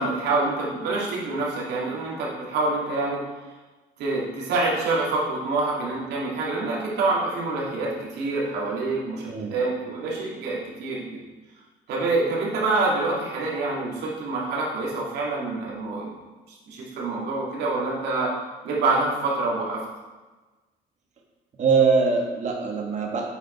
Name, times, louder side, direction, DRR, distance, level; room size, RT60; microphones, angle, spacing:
voice 1, 0.0-3.2 4.0-11.2 11.9-16.2 16.5-18.3 18.6-19.8, right 3 dB, 80° right, -5 dB, 2.5 m, -26 dB
voice 2, 21.6-23.4, right 5 dB, 45° right, 0 dB, 1.5 m, -22 dB
8.5 x 5.1 x 4.5 m, 1.2 s
cardioid pair, 110°, 17 cm